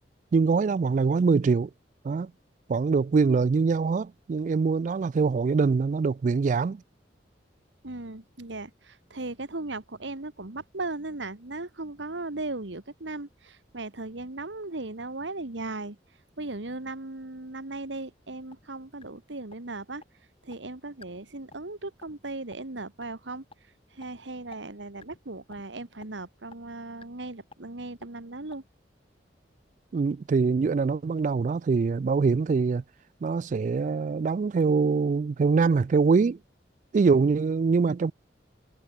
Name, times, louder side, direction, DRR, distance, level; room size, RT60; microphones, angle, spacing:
voice 1, 0.3-1.7 2.0-2.3 2.7-6.8 29.9-32.8 33.2-36.4 36.9-38.1, right 4 dB, 45° right, 0.3 m, -24 dB
voice 2, 7.8-16.0 16.4-20.0 20.4-23.4 23.9-28.6, right 2 dB, 80° right, 1.8 m, -37 dB
sound 1, 18.5-18.7 19.0-19.1 19.5-19.6 20.0-20.1 20.5-20.6 21.0-21.1 21.5-21.7 22.0-22.2 22.5-22.6 23.0-23.1 23.5-23.6 24.0-24.1 24.5-24.6 25.0-25.2 25.5-25.6 26.0-26.1 26.5-26.6 27.0-27.1 27.5-27.6 28.0-28.1 28.5-28.6, left 3 dB, 30° left, 1.8 m, -49 dB
head